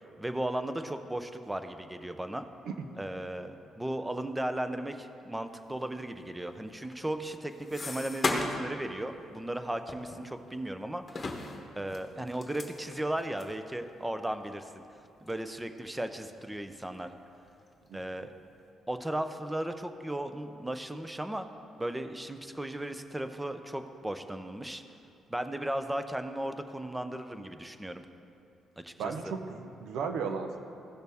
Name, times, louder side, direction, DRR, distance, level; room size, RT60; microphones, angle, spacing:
voice 1, 0.2-2.5 3.0-11.3 11.8-14.8 15.2-17.1 17.9-18.3 18.9-21.5 21.8-24.8 25.3-28.1 28.8-29.3, right 1 dB, 10° right, 8 dB, 0.6 m, -36 dB
sound 1, 6.8-8.8 9.1-9.3 9.9-10.7 11.1-13.6 14.1-14.2 14.5-14.6 15.3-15.5 15.9-16.6 17.0-17.7, left 3 dB, 30° left, 1.1 m, -37 dB
voice 2, 29.0-30.6, right 5 dB, 80° right, 6 dB, 0.8 m, -35 dB
16.0 x 6.4 x 3.5 m, 2.6 s
cardioid pair, 90°, 0 cm